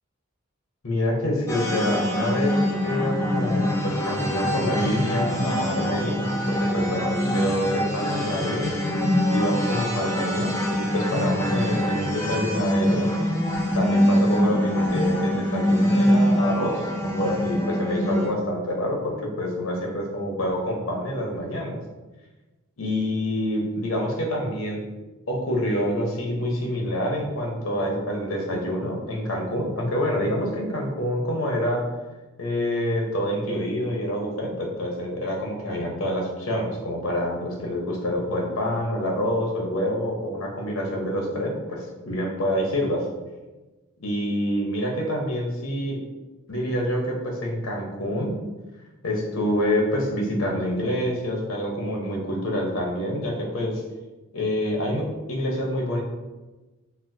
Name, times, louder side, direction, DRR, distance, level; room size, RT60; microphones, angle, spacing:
voice 1, 0.8-6.2 6.5-8.7 9.3-13.1 13.7-21.8 22.8-24.8 25.3-31.8 32.4-43.0 44.0-46.0 46.5-48.4 49.0-53.8 54.3-56.0, equal, 85° left, 0 dB, 0.8 m, -27 dB
sound 1, 1.5-18.3, equal, 15° left, 0.4 m, -24 dB
4.2 x 2.0 x 2.6 m, 1.1 s
head